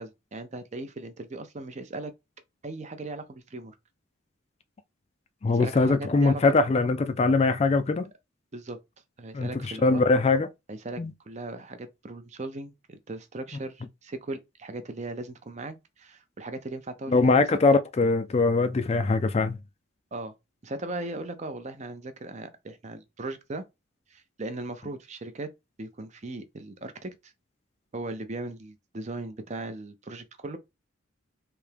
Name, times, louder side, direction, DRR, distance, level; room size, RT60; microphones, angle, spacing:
voice 1, 0.0-2.1 2.6-3.7 5.5-6.4 8.5-8.8 9.2-10.0 10.7-17.4 20.1-20.3 20.6-23.6 24.1-25.5 25.8-27.3 27.9-30.6, right 2 dB, 35° right, 0.6 m, -38 dB
voice 2, 5.4-8.1 9.3-9.5 9.8-10.5 11.0-11.1 17.1-19.6, left 3 dB, 30° left, 0.3 m, -22 dB
3.4 x 2.8 x 3.3 m
head